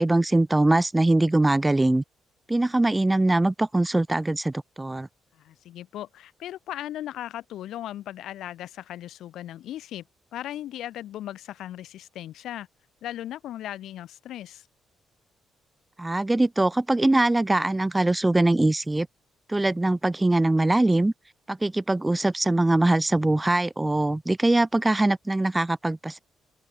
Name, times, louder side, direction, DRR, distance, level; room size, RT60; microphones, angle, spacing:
voice 1, 0.0-2.0 2.5-5.1 16.0-19.1 19.5-21.1 21.5-26.2, right 2 dB, 15° right, 0.8 m, -22 dB
voice 2, 5.3-10.0 10.3-12.7 13.0-14.7, left 12 dB, 80° left, 2.0 m, -37 dB
open air
cardioid pair, 90°, 0 cm